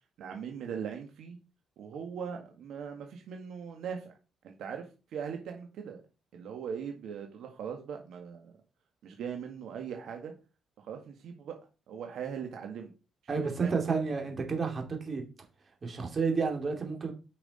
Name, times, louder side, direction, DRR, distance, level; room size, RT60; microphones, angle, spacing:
voice 1, 0.2-1.4 1.8-4.1 4.4-6.0 6.3-8.5 9.0-10.3 10.8-11.6 11.9-12.9 13.4-14.0, right 7 dB, 75° right, 1.7 m, -40 dB
voice 2, 13.3-15.2 15.8-17.1, right 5 dB, 40° right, 2.7 m, -31 dB
9.2 x 5.8 x 4.3 m
cardioid pair, 90°, 0 cm